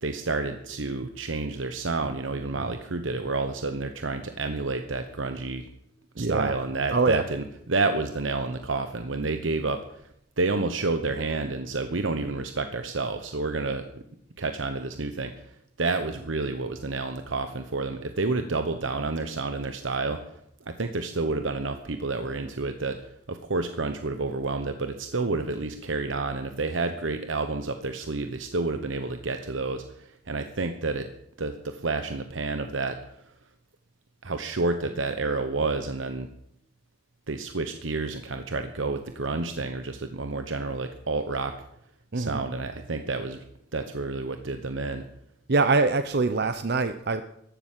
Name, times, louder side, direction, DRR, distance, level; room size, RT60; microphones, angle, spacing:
voice 1, 0.0-5.7 6.1-9.8 10.4-13.9 14.4-20.2 20.7-23.0 23.3-31.1 31.4-33.0 34.2-36.3 37.3-41.6 42.1-43.4 43.7-45.1, right 3 dB, 85° right, 8 dB, 1.0 m, -29 dB
voice 2, 6.2-6.5 6.9-7.2 42.1-42.4 45.5-47.2, right 3 dB, 60° right, 10 dB, 0.8 m, -24 dB
14.5 x 12.0 x 7.5 m, 0.76 s
head